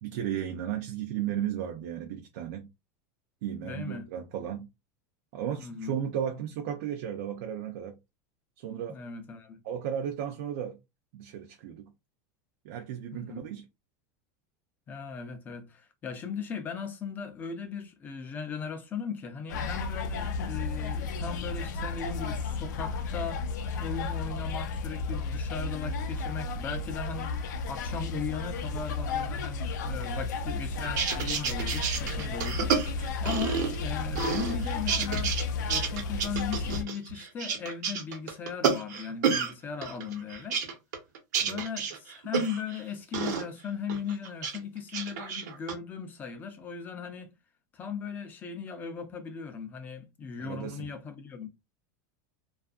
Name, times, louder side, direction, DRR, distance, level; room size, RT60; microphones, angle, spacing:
voice 1, 0.0-2.7 3.4-4.7 5.3-8.0 8.6-9.0 9.6-10.8 11.1-11.9 12.6-13.7 41.4-41.6 50.4-50.9, right 9 dB, 60° right, 0.4 m, -34 dB
voice 2, 3.6-4.1 5.6-6.0 8.9-9.6 13.1-13.5 14.9-23.4 23.8-27.3 27.7-35.4 35.7-40.6 41.5-47.3 47.7-51.5, left 6 dB, 20° left, 0.4 m, -38 dB
sound 1, 19.5-36.8, left 4 dB, 90° left, 0.5 m, -33 dB
sound 2, 30.8-33.9 34.2-35.4 35.7-39.5 39.8-42.8 43.1-43.4 43.9-44.6 44.9-45.7, right 6 dB, 80° right, 0.9 m, -30 dB
2.6 x 2.4 x 2.4 m
supercardioid pair, 160°, 9 cm